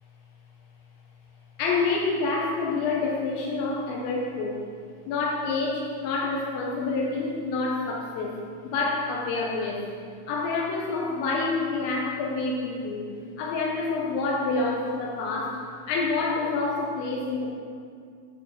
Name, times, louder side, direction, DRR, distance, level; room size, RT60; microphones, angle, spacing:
voice 1, 1.6-4.7 5.1-8.4 8.6-9.9 10.3-13.1 13.4-15.6 15.9-17.5, left 3 dB, 90° left, -3 dB, 3.2 m, -27 dB
8.9 x 4.6 x 7.3 m, 2.2 s
omnidirectional pair, 5.1 m